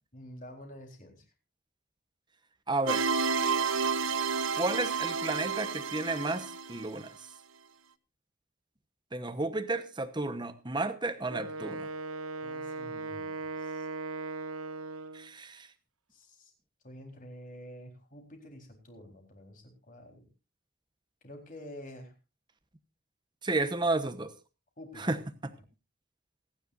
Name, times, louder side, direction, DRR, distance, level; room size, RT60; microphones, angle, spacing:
voice 1, 0.1-1.2 12.4-13.9 16.1-16.5 16.8-20.2 21.2-22.1 23.6-23.7 24.8-25.2, left 1 dB, 40° left, 4.0 m, -48 dB
voice 2, 2.7-3.1 4.6-7.1 9.1-11.9 15.1-15.7 23.4-24.3 25.0-25.2, right 2 dB, 20° right, 1.0 m, -32 dB
sound 1, 2.9-7.0, right 5 dB, 65° right, 0.9 m, -30 dB
Wind instrument woodwind instrument, 11.3-15.3, right 3 dB, 90° right, 0.9 m, -38 dB
27.5 x 10.0 x 2.6 m
head